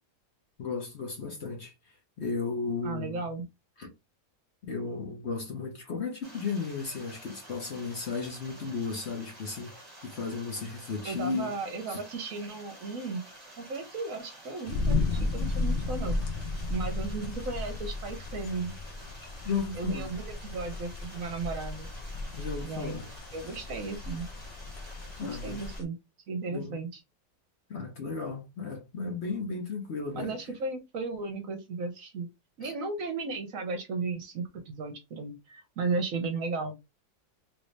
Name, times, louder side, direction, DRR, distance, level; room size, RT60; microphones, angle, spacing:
voice 1, 0.6-1.7 2.2-3.3 3.8-3.9 4.6-11.5 11.9-12.0 19.4-20.1 22.4-23.1 25.2-25.7 26.5-26.8 27.7-30.4 32.6-32.7, left 4 dB, 50° left, 0.9 m, -34 dB
voice 2, 2.8-3.5 11.0-13.3 13.6-16.2 16.7-18.7 19.7-21.9 22.6-23.0 23.3-24.3 25.2-26.0 26.3-26.9 30.1-32.3 32.6-36.8, right 4 dB, 60° right, 1.0 m, -35 dB
sound 1, 6.2-25.8, right 1 dB, 25° right, 1.6 m, -50 dB
sound 2, 14.7-25.8, left 3 dB, 65° left, 0.5 m, -34 dB
3.1 x 2.7 x 3.1 m
omnidirectional pair, 1.7 m